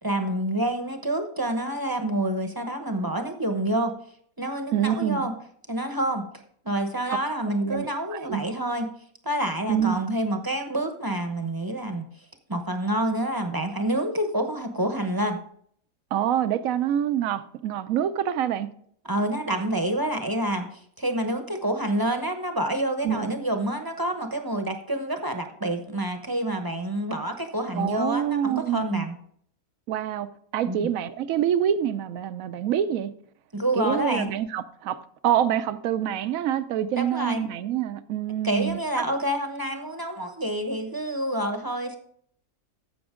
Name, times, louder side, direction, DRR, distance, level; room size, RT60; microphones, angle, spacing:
voice 1, 0.0-3.9 4.4-5.3 5.7-6.3 6.6-8.9 9.2-12.0 12.5-15.4 19.0-29.2 30.7-30.8 33.5-34.3 37.0-37.4 38.4-42.0, right 1 dB, 20° right, 0.8 m, -28 dB
voice 2, 4.7-5.3 7.6-8.4 9.7-10.1 16.1-18.7 23.0-23.3 27.7-29.1 29.9-33.1 33.8-38.8, right 10 dB, 70° right, 1.1 m, -26 dB
15.0 x 6.1 x 3.7 m
omnidirectional pair, 1.5 m